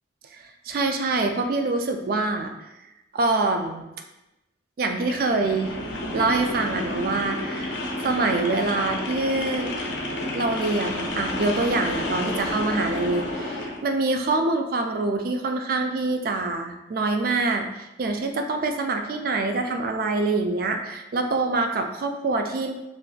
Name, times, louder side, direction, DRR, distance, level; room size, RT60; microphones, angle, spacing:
voice 1, 0.3-2.5 3.1-3.9 4.8-5.7 6.1-7.8 8.0-9.7 10.3-22.7, right 3 dB, 55° right, 5 dB, 0.3 m, -25 dB
sound 1, 4.9-13.8, left 1 dB, 80° left, 0.5 m, -30 dB
2.4 x 2.4 x 3.7 m, 0.93 s
head